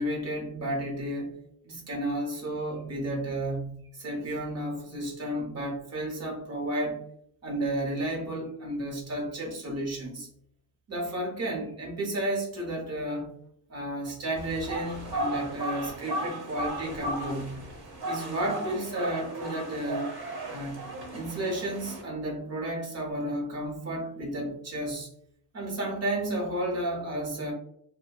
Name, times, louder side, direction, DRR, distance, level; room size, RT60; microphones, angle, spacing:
voice 1, 0.0-1.4 1.6-7.0 7.4-10.3 10.9-13.3 13.7-17.6 18.0-20.2 20.5-20.8 21.1-25.1 25.5-27.5, right 1 dB, 45° right, -1 dB, 0.8 m, -32 dB
sound 1, 14.4-22.0, right 1 dB, 85° right, 1.0 m, -35 dB
2.6 x 2.1 x 2.2 m, 0.67 s
wide cardioid pair, 175°, 36 cm